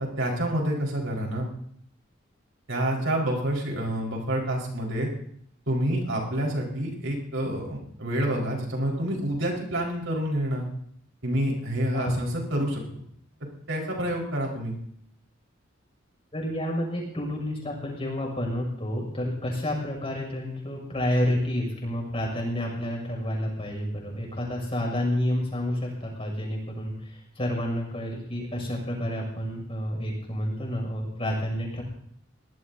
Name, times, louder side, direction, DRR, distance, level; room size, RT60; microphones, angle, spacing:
voice 1, 0.0-1.5 2.7-5.1 5.7-10.6 11.2-12.8 13.7-14.7, right 1 dB, 75° right, -2 dB, 4.9 m, -28 dB
voice 2, 16.3-31.8, left 1 dB, 30° left, -1 dB, 6.6 m, -30 dB
23.5 x 19.0 x 2.8 m, 0.66 s
head